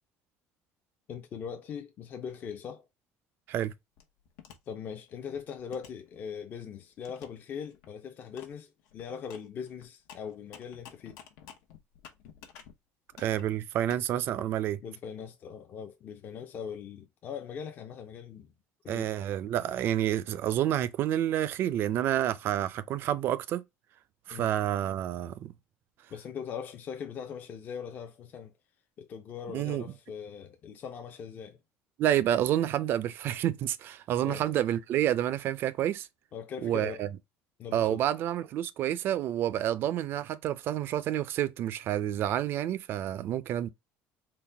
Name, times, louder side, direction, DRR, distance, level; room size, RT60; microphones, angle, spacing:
voice 1, 1.1-2.8 4.7-11.2 14.8-18.5 18.8-19.1 24.3-24.5 26.1-28.5 29.0-31.6 34.2-34.5 36.3-37.0 37.6-38.0, left 7 dB, 35° left, 0.5 m, -41 dB
sound 1, 4.0-4.6 5.1-6.6 7.0-7.3 7.6-7.9 8.4-8.5 8.8-12.7 13.1-14.0, left 9 dB, 90° left, 0.9 m, -51 dB
voice 2, 13.2-14.8 18.9-23.6 24.3-25.5 29.5-29.8 32.0-36.1 36.6-37.1 37.7-43.7, right 11 dB, 45° right, 0.4 m, -29 dB
4.0 x 2.2 x 3.2 m
cardioid pair, 165°, 5 cm